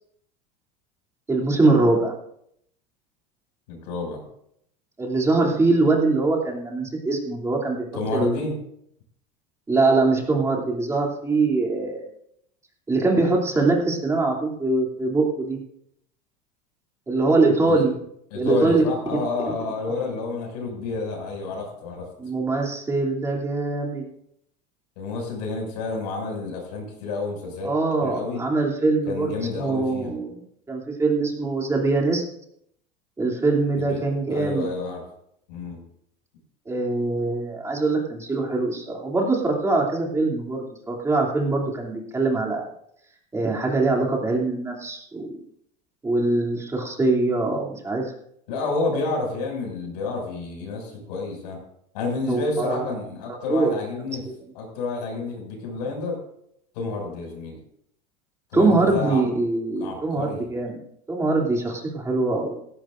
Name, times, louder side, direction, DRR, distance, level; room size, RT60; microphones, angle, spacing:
voice 1, 1.3-2.1 5.0-7.9 8.1-8.4 9.7-12.1 12.9-15.6 17.1-17.9 18.3-18.8 22.2-24.0 27.6-32.2 33.2-34.7 36.7-42.7 43.3-45.4 46.0-48.0 52.3-52.8 53.5-53.7 58.5-60.8 61.1-62.6, right 3 dB, 15° right, -1 dB, 2.9 m, -23 dB
voice 2, 3.7-4.2 7.9-8.5 17.6-17.8 18.3-22.1 25.0-27.7 28.0-28.4 29.1-30.1 33.8-34.0 34.3-35.0 35.5-35.8 48.5-51.6 51.9-54.2 54.5-56.2 56.7-57.6 58.5-59.2 59.8-60.4, left 3 dB, 90° left, 1 dB, 6.2 m, -29 dB
16.5 x 15.5 x 2.6 m, 0.72 s
supercardioid pair, 135°, 20 cm